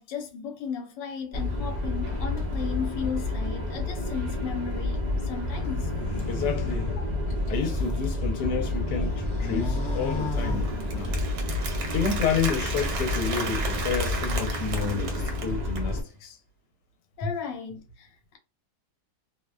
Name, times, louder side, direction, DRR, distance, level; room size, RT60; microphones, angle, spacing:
voice 1, 0.0-5.9 7.2-7.3 17.2-18.4, left 6 dB, 90° left, 1.3 m, -35 dB
sound 1, 1.3-16.0, left 2 dB, 50° right, 0.4 m, -29 dB
sound 2, 5.4-8.0 8.5-11.3, left 4 dB, 45° left, 1.0 m, -37 dB
voice 2, 6.3-6.9 7.5-11.2 11.9-16.4, left 6 dB, 70° left, 1.2 m, -30 dB
Applause, 10.1-15.9, right 4 dB, 70° right, 1.3 m, -35 dB
3.0 x 2.1 x 2.3 m
omnidirectional pair, 1.9 m